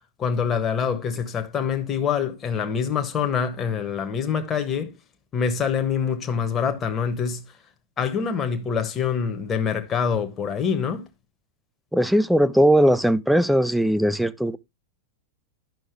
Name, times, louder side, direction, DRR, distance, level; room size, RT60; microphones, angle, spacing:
voice 1, 0.2-4.9 5.3-7.4 8.0-11.1, left 7 dB, 25° left, 1.2 m, -25 dB
voice 2, 11.9-14.6, equal, ahead, 0.5 m, -19 dB
10.5 x 6.1 x 3.3 m
figure-of-eight pair, 90°, 0 cm